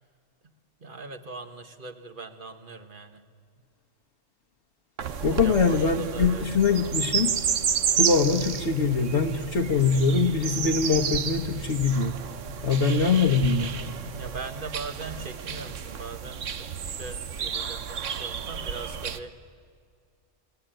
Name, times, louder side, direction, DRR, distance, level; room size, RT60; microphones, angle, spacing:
voice 1, 0.8-3.2 5.2-6.5 9.6-9.8 14.1-19.3, right 3 dB, 45° right, 8 dB, 1.6 m, -40 dB
sound 1, 5.0-19.2, right 7 dB, 80° right, 1.4 m, -31 dB
voice 2, 5.2-7.3 8.0-12.2 12.6-13.7, left 5 dB, 65° left, -1 dB, 1.6 m, -23 dB
29.5 x 19.5 x 9.1 m, 2.2 s
omnidirectional pair, 1.3 m